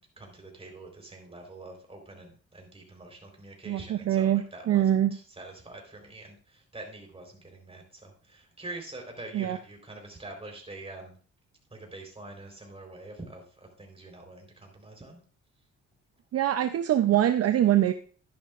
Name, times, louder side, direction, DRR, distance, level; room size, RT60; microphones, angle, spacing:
voice 1, 0.0-11.1 11.7-15.2, right 2 dB, 20° right, 2 dB, 4.0 m, -45 dB
voice 2, 3.7-5.2 9.3-9.6 16.3-17.9, right 11 dB, 55° right, 9 dB, 0.6 m, -24 dB
12.0 x 10.5 x 2.5 m, 0.41 s
cardioid pair, 90°, 30 cm